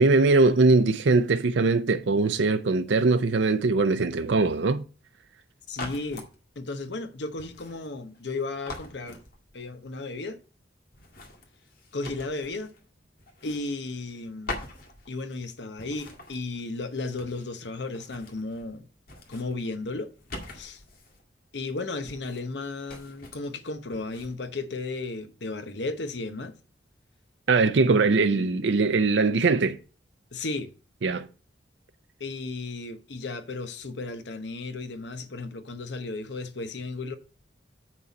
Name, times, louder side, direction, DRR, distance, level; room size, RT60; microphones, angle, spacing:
voice 1, 0.0-4.8 27.5-29.8 31.0-31.3, right 3 dB, 90° right, 0.5 m, -21 dB
voice 2, 5.7-6.3 6.6-9.2 9.5-10.4 11.9-12.7 13.4-14.6 15.1-18.8 19.3-20.1 20.5-20.8 21.5-26.5 28.3-28.6 30.3-30.7 32.2-37.2, left 3 dB, 70° left, 1.0 m, -34 dB
sound 1, 5.7-6.3 7.4-8.4 8.7-9.7 10.9-12.8 13.2-14.2 14.5-15.4 15.8-17.6 17.9-18.8 19.0-21.2 22.1-22.6 22.9-23.5 23.9-24.3, left 2 dB, 55° left, 1.9 m, -43 dB
7.7 x 6.1 x 4.1 m
head